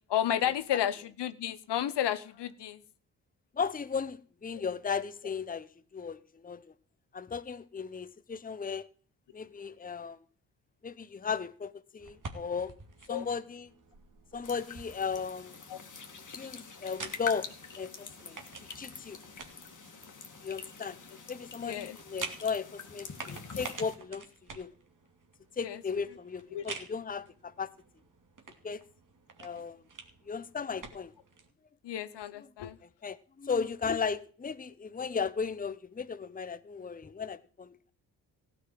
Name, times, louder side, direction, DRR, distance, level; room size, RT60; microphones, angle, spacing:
voice 1, 0.1-2.8 13.1-13.2 15.7-15.8 21.6-22.0 25.6-25.8 26.5-26.6 31.8-32.8, left 10 dB, 60° left, 1.0 m, -32 dB
voice 2, 3.5-6.7 7.1-8.9 9.3-10.2 10.8-12.7 13.1-13.7 14.3-15.5 16.3-17.5 17.8-18.4 18.8-19.2 20.4-21.0 21.3-24.7 25.6-27.7 28.6-28.8 29.4-29.8 30.3-31.1 32.4-32.5 33.0-37.9, left 5 dB, 20° left, 0.8 m, -36 dB
sound 1, 12.0-31.5, right 4 dB, 40° right, 2.6 m, -49 dB
sound 2, 14.4-23.9, left 5 dB, 40° left, 2.4 m, -45 dB
16.5 x 6.1 x 7.6 m
hypercardioid pair, 40°, 46 cm